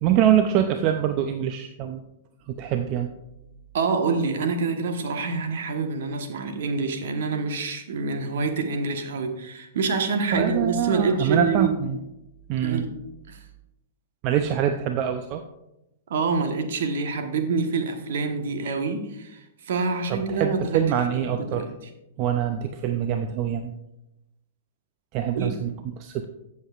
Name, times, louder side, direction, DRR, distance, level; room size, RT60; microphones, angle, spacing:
voice 1, 0.0-2.0 2.5-3.1 10.3-12.0 12.5-12.9 14.2-15.4 20.1-21.7 22.2-23.7 25.1-26.3, right 10 dB, 40° right, 7 dB, 0.6 m, -24 dB
voice 2, 3.7-11.7 12.6-12.9 13.3-13.4 16.1-20.8 21.3-21.7 25.3-25.6, right 4 dB, 65° right, 6 dB, 1.3 m, -26 dB
14.0 x 7.3 x 2.5 m, 0.90 s
hypercardioid pair, 110°, 0 cm